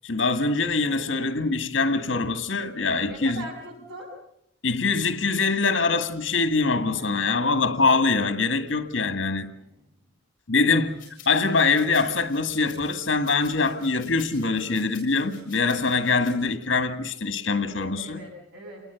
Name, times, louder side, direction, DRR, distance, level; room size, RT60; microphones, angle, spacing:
voice 1, 0.0-3.4 4.6-9.5 10.5-11.0 11.2-18.2, left 4 dB, 70° left, 1.7 m, -23 dB
voice 2, 3.0-4.1 6.9-7.6 9.5-9.7 17.7-18.8, right 1 dB, 65° right, 7.8 m, -41 dB
sound 1, 11.0-16.3, left 6 dB, 45° left, 7.1 m, -48 dB
28.0 x 21.0 x 7.0 m
head